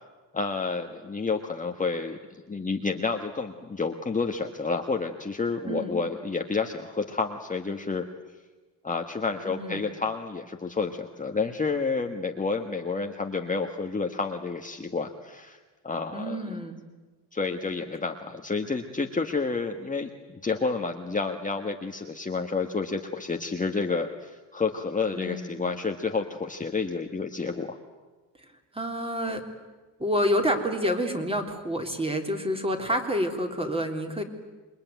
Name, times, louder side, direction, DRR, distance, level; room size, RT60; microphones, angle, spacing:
voice 1, 0.3-8.1 8.8-15.6 15.8-16.6 17.3-27.8, left 4 dB, 15° left, 3 dB, 1.5 m, -30 dB
voice 2, 5.7-6.0 9.5-9.9 16.1-16.8 25.1-25.6 28.7-29.4 30.0-34.2, equal, 15° right, 4 dB, 3.5 m, -28 dB
28.0 x 22.0 x 9.4 m, 1.3 s
cardioid pair, 125°, 44 cm